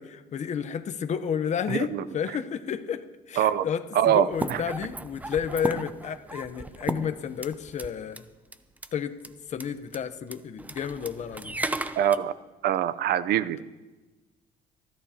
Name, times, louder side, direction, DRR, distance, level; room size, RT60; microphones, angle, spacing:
voice 1, 0.0-1.9 2.1-8.2 8.9-11.5, left 7 dB, 45° left, 10 dB, 0.8 m, -31 dB
voice 2, 1.7-2.0 3.4-3.6 3.9-4.6 12.0-12.3 12.6-13.6, right 10 dB, 70° right, 15 dB, 0.7 m, -24 dB
sound 1, 4.3-7.9 8.2-8.3 8.5-8.9 9.2-9.3 9.5-9.7 9.9-10.0 10.3-12.2, right 2 dB, 10° right, 0.5 m, -35 dB
28.5 x 11.5 x 2.9 m, 1.2 s
cardioid pair, 110°, 17 cm